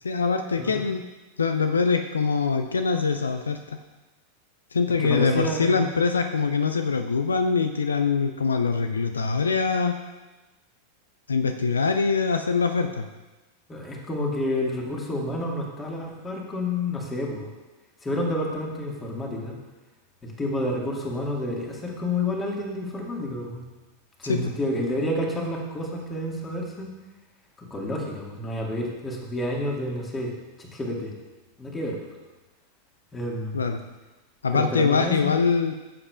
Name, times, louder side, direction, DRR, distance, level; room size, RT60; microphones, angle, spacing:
voice 1, 0.0-1.0 1.4-3.8 4.7-10.0 11.3-13.1 24.2-24.5 33.5-33.8 34.4-35.7, left 5 dB, 75° left, 7 dB, 0.4 m, -23 dB
voice 2, 5.0-6.0 13.7-17.5 18.0-19.5 20.2-23.6 24.2-26.9 27.6-31.1 31.6-32.0 33.1-33.6 34.5-35.4, left 1 dB, 15° left, -1 dB, 1.9 m, -29 dB
14.5 x 7.6 x 2.4 m, 1.1 s
figure-of-eight pair, 90°, 0 cm